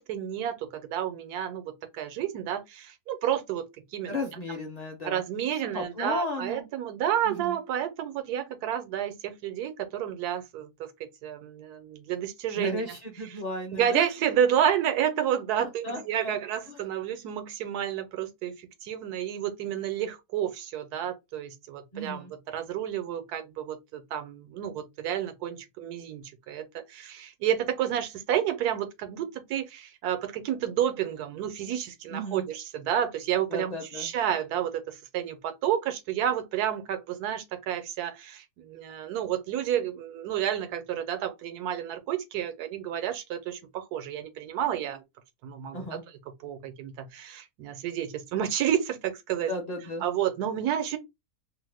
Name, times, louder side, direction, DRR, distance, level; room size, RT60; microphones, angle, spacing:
voice 1, 0.0-3.6 3.9-4.1 5.0-10.9 11.2-12.8 13.7-22.2 22.5-45.0 45.4-45.8 46.4-49.5 50.0-51.0, right 10 dB, 90° right, 1.2 m, -30 dB
voice 2, 4.1-5.2 5.7-6.7 7.2-7.6 12.6-14.0 15.6-16.3 16.7-16.8 21.9-22.3 32.1-32.5 33.5-34.1 45.7-46.0 49.5-50.0, left 1 dB, 45° left, 0.5 m, -35 dB
2.8 x 2.0 x 3.2 m
omnidirectional pair, 1.6 m